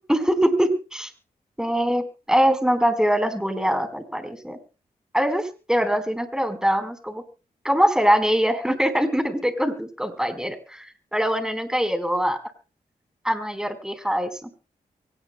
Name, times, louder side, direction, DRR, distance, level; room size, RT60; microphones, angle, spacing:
voice 1, 0.1-1.1 1.6-4.6 5.1-7.2 7.6-10.9 11.1-12.4 13.2-14.5, equal, 5° right, 8 dB, 4.2 m, -23 dB
24.0 x 18.0 x 2.2 m, 0.34 s
supercardioid pair, 40°, 16 cm